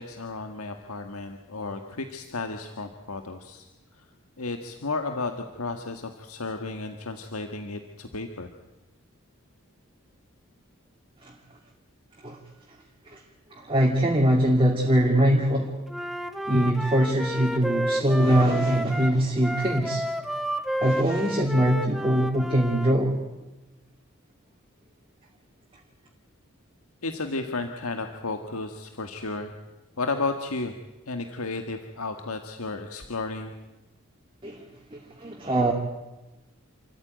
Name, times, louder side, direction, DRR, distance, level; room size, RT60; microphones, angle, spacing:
voice 1, 0.0-3.6 4.4-8.5 27.0-29.5 30.0-30.7 31.1-33.5, left 3 dB, 85° left, 6 dB, 1.6 m, -33 dB
voice 2, 13.7-15.8 16.5-20.0 20.8-23.1 34.4-34.6 34.9-35.7, right 1 dB, 25° right, 0 dB, 2.6 m, -22 dB
Wind instrument woodwind instrument, 15.9-22.9, right 1 dB, ahead, 1.0 m, -31 dB
28.5 x 14.5 x 9.2 m, 1.1 s
head